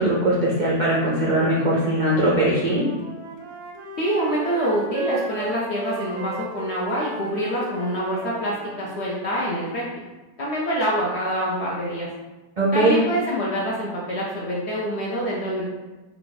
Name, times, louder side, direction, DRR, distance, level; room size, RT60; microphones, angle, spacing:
voice 1, 0.0-2.8 12.6-13.0, right 1 dB, 65° right, -6 dB, 0.4 m, -20 dB
Wind instrument woodwind instrument, 2.6-8.9, right 2 dB, 90° right, 1.2 m, -35 dB
voice 2, 4.0-10.0 10.4-12.1 12.7-15.6, equal, 65° left, -4 dB, 0.7 m, -26 dB
3.4 x 2.3 x 3.8 m, 1.2 s
omnidirectional pair, 1.7 m